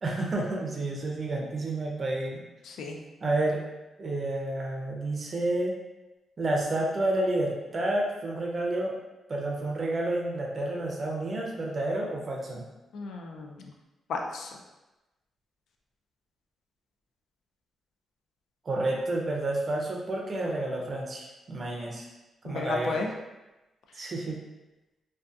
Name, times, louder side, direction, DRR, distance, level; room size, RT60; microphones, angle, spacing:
voice 1, 0.0-2.4 3.2-3.6 4.0-5.8 6.4-9.0 9.3-12.6 18.7-22.1 22.4-23.0 23.9-24.4, right 2 dB, 35° right, -1 dB, 0.5 m, -30 dB
voice 2, 2.6-3.0 12.9-13.6 14.1-14.5 22.4-23.1, left 3 dB, 80° left, 2 dB, 0.3 m, -34 dB
2.6 x 2.2 x 2.3 m, 1.1 s
cardioid pair, 115°, 0 cm